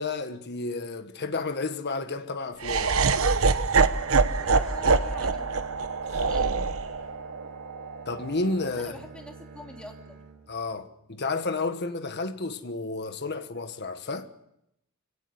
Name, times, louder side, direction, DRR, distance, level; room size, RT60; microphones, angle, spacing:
voice 1, 0.0-2.9 6.1-6.2 8.0-9.0 10.5-14.4, left 3 dB, 50° left, 1.4 m, -31 dB
Laughter, 2.6-8.8, right 4 dB, 75° right, 1.1 m, -25 dB
Bowed string instrument, 2.8-11.0, right 4 dB, 50° right, 4.7 m, -48 dB
voice 2, 4.4-5.5 6.1-6.6 8.8-10.2, left 1 dB, 5° left, 3.0 m, -45 dB
24.5 x 17.5 x 8.2 m
head